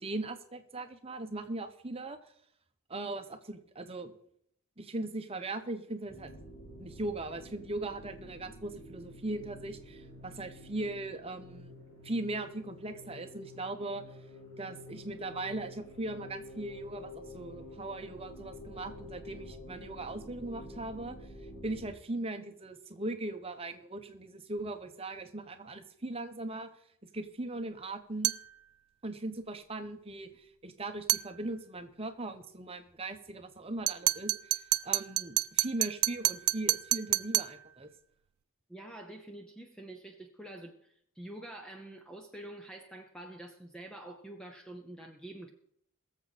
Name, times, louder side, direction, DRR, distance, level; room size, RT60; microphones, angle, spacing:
voice 1, 0.0-2.2 2.9-4.1 4.8-6.3 6.8-11.7 12.0-14.0 14.6-21.2 21.6-26.7 27.0-28.3 29.0-37.9, right 2 dB, 25° right, 8 dB, 1.0 m, -39 dB
sound 1, 6.1-21.9, left 1 dB, 60° left, 3.1 m, -49 dB
sound 2, 28.2-28.5 31.1-31.3 33.9-37.6, right 18 dB, 90° right, 0.4 m, -29 dB
voice 2, 38.7-45.5, right 1 dB, 5° left, 3 dB, 0.8 m, -47 dB
21.5 x 7.3 x 4.2 m, 0.70 s
head